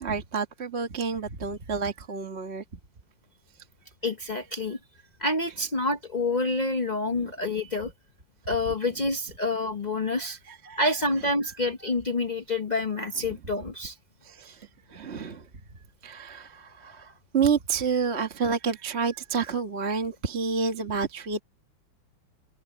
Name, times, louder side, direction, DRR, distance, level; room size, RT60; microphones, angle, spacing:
voice 1, 0.0-2.6 7.1-7.3 10.2-10.8 14.2-15.5 16.0-21.4, right 5 dB, 35° right, 1.6 m, -29 dB
voice 2, 4.0-4.8 5.2-7.9 8.5-10.4 10.8-13.9, left 2 dB, 40° left, 0.6 m, -28 dB
omnidirectional pair, 2.2 m